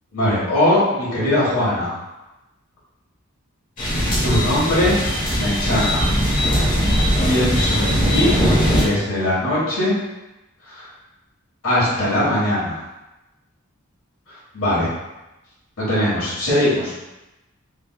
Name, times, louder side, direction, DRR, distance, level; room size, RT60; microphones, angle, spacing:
voice 1, 0.1-2.0 4.2-5.1 5.3-6.1 7.2-8.3 8.8-9.9 10.6-10.9 11.6-12.8 14.5-14.9 15.8-16.9, left 1 dB, 75° left, -7 dB, 1.4 m, -20 dB
sound 1, 3.8-8.8, equal, 35° left, 0.9 m, -19 dB
3.3 x 3.0 x 2.3 m, 1.0 s
head